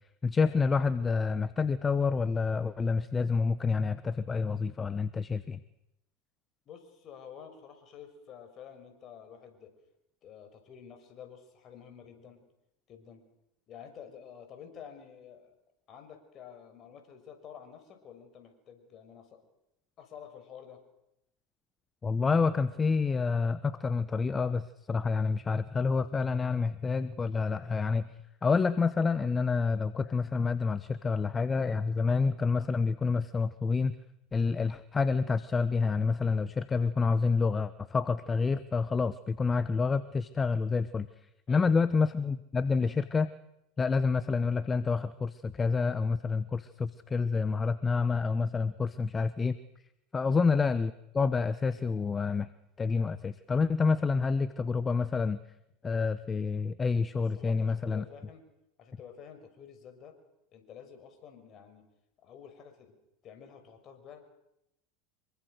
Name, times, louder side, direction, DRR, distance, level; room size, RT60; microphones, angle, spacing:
voice 1, 0.2-5.6 22.0-34.0 34.3-43.3 43.8-49.6 50.1-52.5 52.8-55.4 55.8-58.0, left 4 dB, 20° left, 15 dB, 1.0 m, -28 dB
voice 2, 6.7-9.7 10.2-12.4 12.9-13.2 13.7-15.5 15.9-19.4 20.0-20.8 41.5-41.8 50.3-50.5 57.1-58.5 58.8-60.2 60.5-61.8 62.2-62.9 63.2-64.2, left 8 dB, 40° left, 7 dB, 6.1 m, -50 dB
26.5 x 23.5 x 6.6 m, 0.85 s
hypercardioid pair, 85°, 0 cm